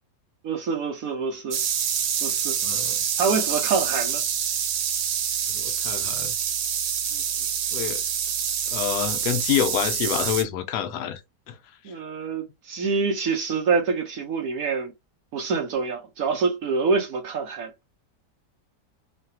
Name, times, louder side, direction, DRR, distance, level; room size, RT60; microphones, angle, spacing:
voice 1, 0.4-1.6 2.2-2.5 3.2-4.2 7.1-7.2 11.8-14.9 15.3-17.7, right 4 dB, 65° right, 1.0 m, -26 dB
sound 1, 1.5-10.4, right 8 dB, 85° right, 1.3 m, -26 dB
voice 2, 2.6-3.0 5.5-6.4 7.7-8.0 8.7-11.2 11.5-11.6, left 9 dB, 70° left, 1.1 m, -27 dB
3.2 x 2.3 x 2.6 m
omnidirectional pair, 1.9 m